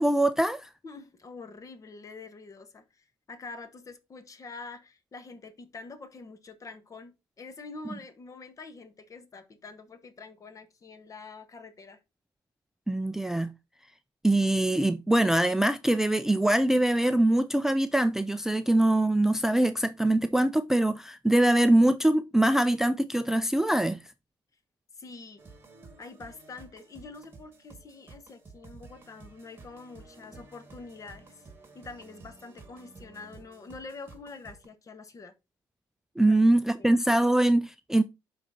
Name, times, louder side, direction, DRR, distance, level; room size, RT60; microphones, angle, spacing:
voice 1, 0.0-0.7 12.9-13.5 14.2-24.0 36.2-38.0, right 1 dB, 5° right, 0.3 m, -23 dB
voice 2, 0.8-12.0 25.0-25.4 26.0-31.5 31.7-35.3 36.3-36.9, left 3 dB, 40° left, 1.2 m, -46 dB
sound 1, 25.4-34.7, right 3 dB, 25° right, 1.8 m, -52 dB
11.0 x 3.9 x 2.7 m
cardioid pair, 85°, 9 cm